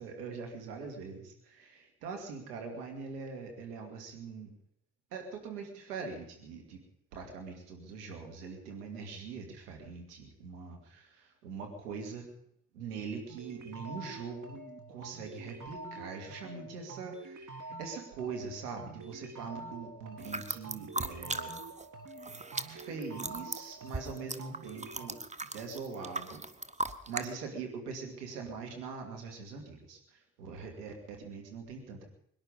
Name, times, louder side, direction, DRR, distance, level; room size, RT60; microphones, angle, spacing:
voice 1, 0.0-4.5 5.1-6.8 7.1-12.3 12.7-14.6 14.9-21.5 22.7-25.2 25.5-26.5 27.1-32.1, right 5 dB, 75° right, 3 dB, 2.5 m, -42 dB
sound 1, 13.3-25.1, right 3 dB, 40° right, 2.1 m, -47 dB
sound 2, 20.2-21.9 22.1-27.3, right 2 dB, 15° right, 1.1 m, -38 dB
23.0 x 10.5 x 5.4 m, 0.72 s
figure-of-eight pair, 40°, 46 cm